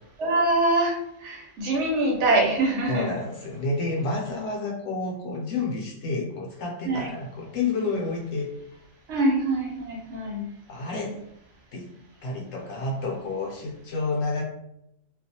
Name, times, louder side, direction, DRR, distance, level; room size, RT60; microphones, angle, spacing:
voice 1, 0.2-3.1 6.8-7.1 9.1-10.4, right 2 dB, 65° right, -2 dB, 1.0 m, -24 dB
voice 2, 2.9-8.5 10.7-11.2 11.7-11.9 12.2-14.4, left 3 dB, 65° left, -1 dB, 0.8 m, -29 dB
2.3 x 2.3 x 2.7 m, 0.80 s
omnidirectional pair, 1.3 m